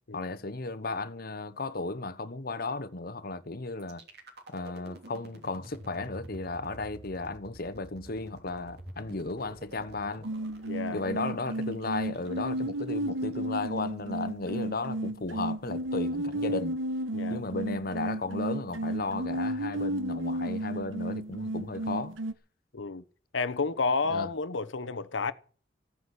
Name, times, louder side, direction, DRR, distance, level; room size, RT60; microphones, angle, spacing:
voice 1, 0.1-4.0 4.5-10.3 10.9-16.8 17.3-22.2 24.1-24.3, left 3 dB, 50° left, 1.1 m, -35 dB
sound 1, 3.8-13.8, right 1 dB, 55° right, 3.0 m, -49 dB
sound 2, 10.2-22.3, right 1 dB, 90° right, 1.3 m, -33 dB
voice 2, 10.7-11.0 17.1-17.4 22.7-23.0 23.3-25.3, left 4 dB, 70° left, 1.0 m, -31 dB
15.5 x 9.6 x 8.2 m
head